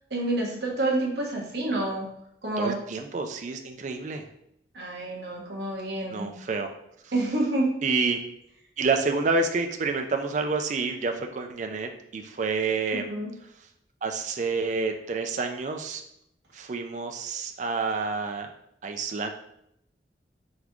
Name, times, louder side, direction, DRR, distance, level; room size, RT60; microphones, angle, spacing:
voice 1, 0.1-2.1 2.4-2.8 4.7-6.3 7.1-7.7 13.0-13.3, right 2 dB, 70° right, -1 dB, 1.1 m, -28 dB
voice 2, 2.6-4.2 6.1-6.7 7.8-8.2 8.8-13.1 14.0-16.0 16.5-18.5 18.8-19.3, right 4 dB, 45° right, 5 dB, 0.4 m, -28 dB
4.0 x 3.4 x 3.0 m, 0.75 s
head